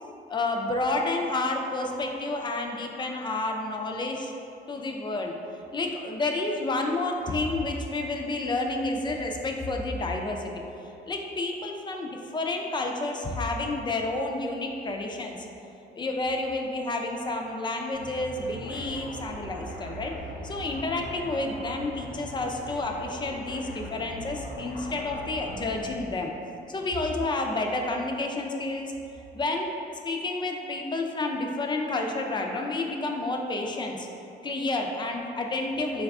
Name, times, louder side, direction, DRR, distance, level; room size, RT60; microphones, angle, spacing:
voice 1, 0.3-4.3 4.7-5.3 5.7-10.5 11.1-15.4 15.6-20.1 20.4-26.3 26.7-28.9 29.3-29.7 30.0-34.1 34.4-36.0, left 2 dB, 25° left, 2 dB, 0.4 m, -30 dB
sound 1, 17.9-26.1, equal, 75° left, 0.7 m, -40 dB
3.9 x 2.4 x 3.5 m, 2.8 s
cardioid pair, 90°, 20 cm